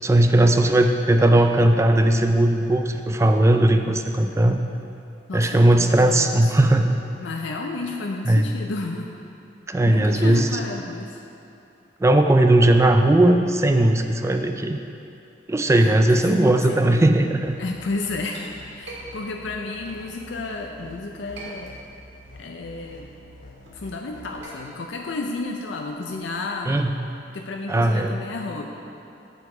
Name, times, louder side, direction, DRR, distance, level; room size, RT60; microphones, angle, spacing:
voice 1, 0.0-4.6 5.3-7.0 8.3-8.5 9.7-10.5 12.0-14.8 15.5-17.6 26.7-26.9 27.7-28.1, right 1 dB, 15° right, 5 dB, 0.3 m, -18 dB
voice 2, 5.3-6.6 7.2-9.2 9.8-11.2 15.8-17.1 17.6-21.8 22.4-23.1 23.7-26.8 27.3-28.7, left 3 dB, 80° left, 2 dB, 0.5 m, -32 dB
sound 1, 17.4-24.4, left 1 dB, 50° left, 0.8 m, -47 dB
Chink clink, 18.3-20.7 21.1-22.2 22.5-26.6, right 2 dB, 65° right, 1.9 m, -44 dB
8.1 x 6.7 x 4.9 m, 2.7 s
head